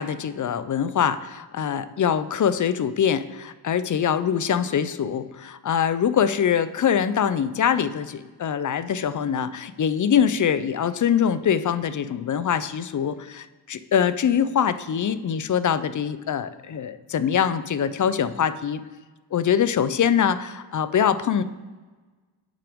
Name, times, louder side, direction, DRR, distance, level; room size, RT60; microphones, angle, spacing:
voice 1, 0.0-18.8 19.3-21.4, left 8 dB, 45° left, 13 dB, 0.5 m, -23 dB
8.7 x 5.8 x 3.6 m, 1.3 s
cardioid pair, 85°, 45 cm